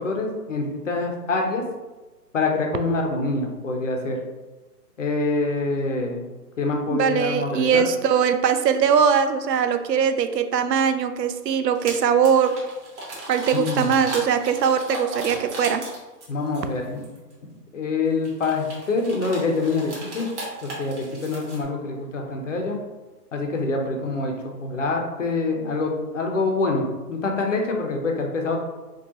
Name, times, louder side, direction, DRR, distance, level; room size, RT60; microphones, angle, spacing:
voice 1, 0.0-1.6 2.3-4.2 5.0-6.2 6.6-7.8 13.5-13.9 16.3-17.0 17.7-20.3 20.6-22.8 23.3-24.3 24.6-28.6, left 3 dB, 50° left, 2 dB, 0.7 m, -25 dB
voice 2, 6.9-12.6 13.3-15.8, right 7 dB, 80° right, 9 dB, 0.6 m, -21 dB
sound 1, 11.7-11.9 12.2-16.6 17.0-17.3 18.2-21.6, right 1 dB, 45° right, 1.2 m, -36 dB
4.5 x 2.4 x 2.9 m, 1.2 s
hypercardioid pair, 170°, 49 cm